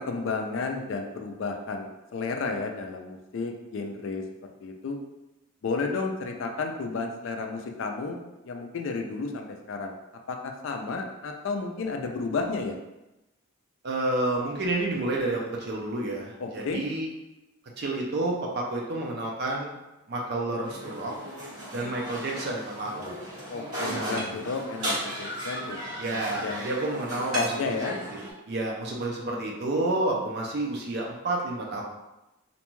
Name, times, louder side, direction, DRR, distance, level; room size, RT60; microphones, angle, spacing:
voice 1, 0.0-4.2 4.6-5.0 5.6-9.9 10.3-12.7 16.4-16.8 23.5-26.6 27.3-28.0, left 4 dB, 60° left, 3 dB, 0.3 m, -32 dB
voice 2, 13.8-17.1 17.8-19.8 20.1-21.1 21.7-23.2 23.9-24.3 26.0-27.6 28.5-31.8, right 2 dB, 50° right, -1 dB, 0.4 m, -30 dB
sound 1, 20.6-28.3, equal, 75° right, 1.2 m, -35 dB
2.5 x 2.2 x 3.0 m, 0.98 s
head